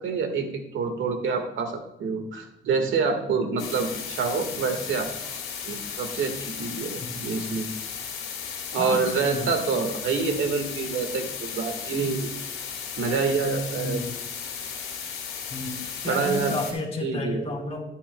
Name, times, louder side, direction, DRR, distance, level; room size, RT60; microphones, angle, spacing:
voice 1, 0.0-5.1 5.6-7.7 8.7-12.3 13.0-14.0 16.0-16.5 17.0-17.4, right 5 dB, 75° right, 5 dB, 1.7 m, -27 dB
sound 1, 3.6-16.7, left 7 dB, 90° left, 2.1 m, -35 dB
voice 2, 8.8-9.5 13.8-14.1 15.5-17.8, left 2 dB, 30° left, 2 dB, 2.8 m, -31 dB
13.0 x 8.4 x 2.3 m, 0.83 s
cardioid pair, 90°, 20 cm